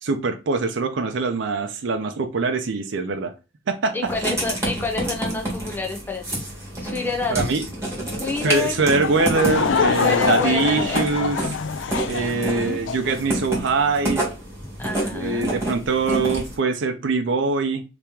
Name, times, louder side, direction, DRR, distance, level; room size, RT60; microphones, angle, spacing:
voice 1, 0.0-3.3 3.7-4.0 7.3-7.6 8.4-11.4 12.1-14.3 15.1-17.8, right 4 dB, 70° right, 6 dB, 0.5 m, -23 dB
voice 2, 3.9-6.4 6.8-7.6 8.2-8.8 10.0-11.3 12.2-12.8 14.8-15.5, left 3 dB, 10° left, 1 dB, 0.6 m, -29 dB
Writing, 4.0-16.6, right 1 dB, 15° right, 1.4 m, -29 dB
Laughter / Crowd, 9.0-13.2, left 5 dB, 70° left, 0.4 m, -24 dB
3.0 x 2.9 x 3.4 m, 0.29 s
head